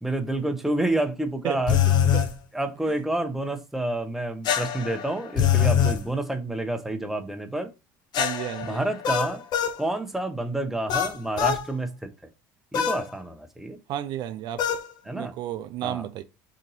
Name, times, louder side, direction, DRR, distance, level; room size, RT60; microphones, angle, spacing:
voice 1, 0.0-1.8 2.5-7.7 8.6-9.4 9.8-12.1 12.7-13.8 15.1-15.3 15.8-16.0, right 2 dB, 5° right, 0.6 m, -29 dB
sound 1, 1.7-2.3 4.4-6.0 8.1-9.8 10.9-11.6 12.7-13.0 14.6-14.9, left 9 dB, 55° left, 0.6 m, -23 dB
voice 2, 8.2-8.8 13.9-14.6 15.1-16.2, right 12 dB, 55° right, 0.4 m, -32 dB
2.8 x 2.6 x 3.9 m
supercardioid pair, 95°, 9 cm